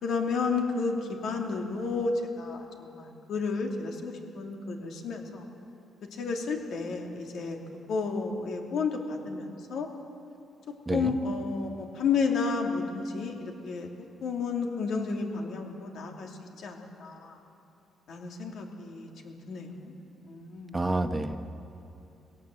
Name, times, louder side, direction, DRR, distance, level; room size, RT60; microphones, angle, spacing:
voice 1, 0.0-0.9 1.2-5.5 6.2-7.6 7.9-9.9 10.9-13.9 14.2-16.3 16.6-17.4 18.1-19.9 20.2-20.8, left 4 dB, 70° left, 2 dB, 2.7 m, -32 dB
voice 2, 20.7-21.4, right 2 dB, 20° right, 8 dB, 1.0 m, -28 dB
20.0 x 17.5 x 7.8 m, 2.9 s
cardioid pair, 90°, 0 cm